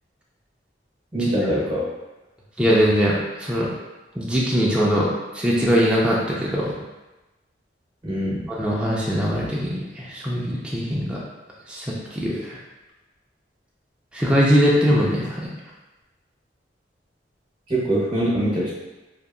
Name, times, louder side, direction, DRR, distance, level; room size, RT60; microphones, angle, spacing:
voice 1, 1.1-1.9 8.0-8.5 17.7-18.7, right 1 dB, 25° right, -7 dB, 0.8 m, -23 dB
voice 2, 2.6-3.7 4.2-5.1 5.3-6.7 8.5-11.2 11.7-12.6 14.1-15.5, equal, 5° right, -5 dB, 0.3 m, -21 dB
2.7 x 2.3 x 2.3 m, 1.1 s
head